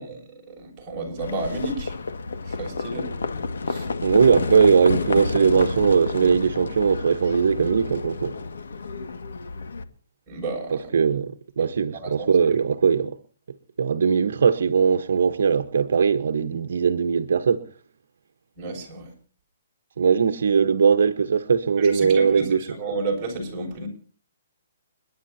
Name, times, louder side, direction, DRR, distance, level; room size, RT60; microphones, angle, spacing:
voice 1, 0.0-1.9 2.5-3.1 3.7-3.9 10.3-10.8 11.6-11.7 12.2-12.3 18.6-19.1 21.8-23.9, right 3 dB, 15° right, 6.9 m, -32 dB
Livestock farm animals working animals, 1.2-9.8, left 4 dB, 85° left, 1.9 m, -30 dB
voice 2, 4.0-8.3 10.7-13.2 13.8-17.6 20.0-22.6, right 6 dB, 70° right, 1.2 m, -20 dB
30.0 x 11.0 x 2.8 m
hypercardioid pair, 165°, 0 cm